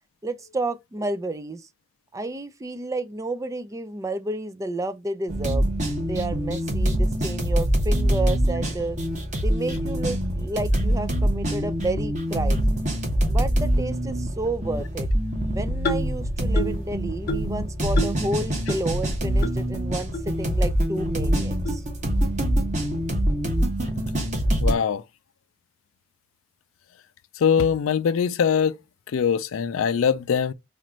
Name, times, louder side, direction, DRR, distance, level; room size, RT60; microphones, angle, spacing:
voice 1, 0.2-1.7 2.1-5.7 6.0-9.0 9.4-12.7 13.3-15.1 15.5-21.8, right 2 dB, 15° right, 0.3 m, -31 dB
sound 1, 5.3-24.7, equal, 35° right, 1.2 m, -24 dB
sound 2, 15.8-16.2 16.6-16.8 17.3-17.6 18.0-18.2 18.7-18.8 19.4-19.5 20.1-20.2 20.9-21.0 21.6-21.8, equal, 50° left, 0.7 m, -29 dB
voice 2, 24.6-25.0 27.4-28.8 29.1-30.5, left 7 dB, 85° left, 0.4 m, -22 dB
4.2 x 2.5 x 3.0 m
head